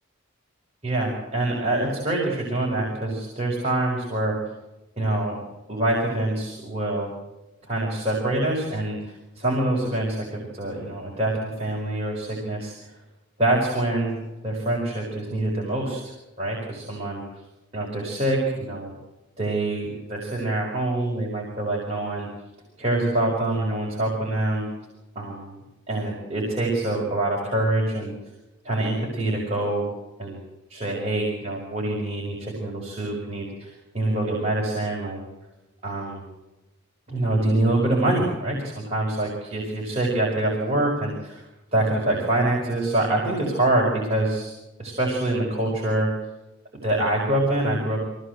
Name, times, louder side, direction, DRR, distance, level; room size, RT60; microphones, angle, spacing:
voice 1, 0.8-4.4 5.0-5.4 5.7-7.1 7.7-12.9 13.4-14.2 14.4-17.2 17.7-18.9 19.4-22.3 22.8-24.7 25.2-25.6 25.9-28.1 28.6-29.9 30.2-30.4 30.7-35.2 35.8-36.2 37.1-41.4 41.7-44.5 44.8-46.1 46.8-48.0, right 1 dB, 30° right, -4 dB, 5.3 m, -25 dB
24.0 x 17.5 x 8.1 m, 1.0 s
head